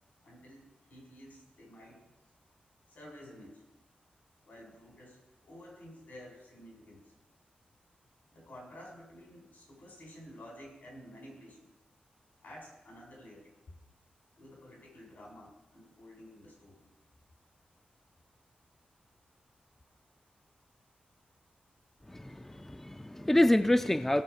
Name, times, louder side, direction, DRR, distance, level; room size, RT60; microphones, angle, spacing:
voice 1, 0.2-2.1 2.9-3.6 4.4-7.1 8.3-11.7 12.4-13.5 14.3-16.9, equal, 75° left, 4.9 m, -52 dB
voice 2, 22.1-24.2, left 1 dB, 10° left, 0.4 m, -27 dB
17.0 x 6.5 x 5.0 m
wide cardioid pair, 90°, 3 cm